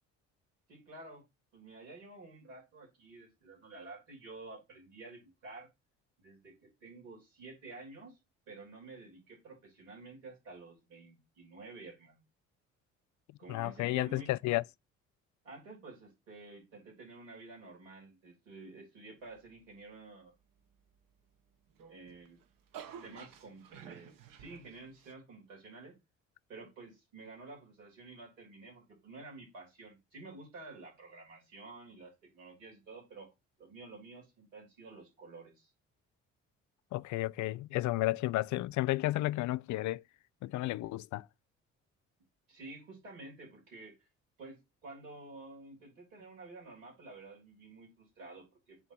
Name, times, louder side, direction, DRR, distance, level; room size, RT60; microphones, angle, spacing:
voice 1, 0.7-1.2 1.5-5.7 6.2-8.2 8.5-12.2 13.4-14.3 15.4-20.3 21.9-22.4 23.0-26.0 26.5-33.3 33.6-35.7 42.5-44.0 44.4-48.9, right 3 dB, 85° right, 3.7 m, -51 dB
voice 2, 13.5-14.6 36.9-40.0 40.4-41.2, left 17 dB, 50° left, 0.5 m, -32 dB
sound 1, 21.7-25.1, right 8 dB, 60° right, 1.4 m, -51 dB
8.5 x 3.1 x 4.4 m
hypercardioid pair, 50°, 38 cm